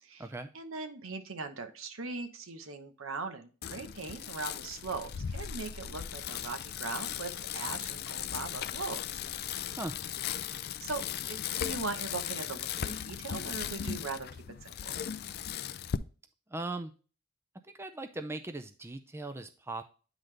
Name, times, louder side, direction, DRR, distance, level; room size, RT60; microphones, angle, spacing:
voice 1, 0.5-9.2 10.4-11.0 11.3-14.3 14.6-15.0, right 4 dB, 75° right, 8 dB, 0.9 m, -40 dB
Bicycle, 3.6-16.0, left 9 dB, 50° left, 0.4 m, -37 dB
voice 2, 16.5-16.9 17.8-19.8, right 2 dB, 10° right, 7 dB, 0.5 m, -38 dB
9.0 x 4.0 x 3.2 m, 0.35 s
head